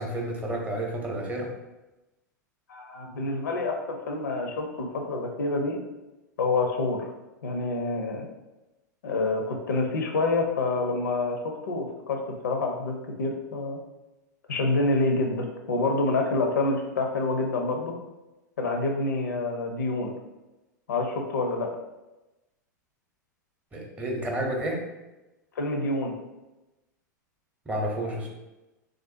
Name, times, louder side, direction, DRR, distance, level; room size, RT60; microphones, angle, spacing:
voice 1, 0.0-1.5 23.7-24.8 27.7-28.3, right 1 dB, 15° right, -1 dB, 0.7 m, -30 dB
voice 2, 2.7-5.8 6.4-7.0 7.4-8.3 9.0-13.8 14.5-17.9 18.6-20.1 20.9-21.7 25.6-26.2, left 2 dB, 70° left, 3 dB, 0.5 m, -27 dB
3.4 x 2.5 x 2.5 m, 1.0 s
figure-of-eight pair, 95°, 10 cm